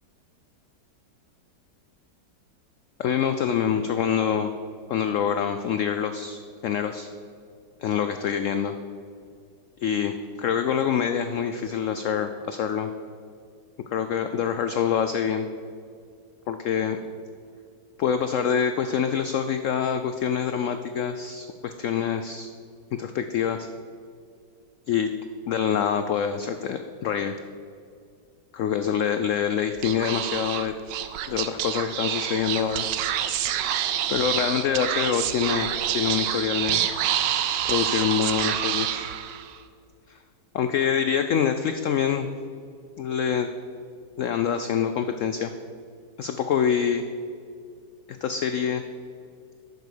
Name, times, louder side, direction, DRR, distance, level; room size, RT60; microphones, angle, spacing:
voice 1, 3.0-4.5 4.9-7.1 7.8-8.8 9.8-10.1 10.4-12.9 13.9-15.5 16.5-17.0 18.0-22.5 23.0-23.7 24.9-25.1 25.5-27.3 28.5-30.7 31.3-32.9 34.1-36.8 37.7-39.1 40.1-40.2 40.5-42.3 43.0-43.5 44.2-45.5 46.2-47.0 48.1-48.8, left 8 dB, 80° left, 8 dB, 0.7 m, -25 dB
Speech / Whispering, 29.8-39.6, right 10 dB, 85° right, 1.3 m, -27 dB
10.5 x 6.9 x 6.6 m, 2.3 s
omnidirectional pair, 1.9 m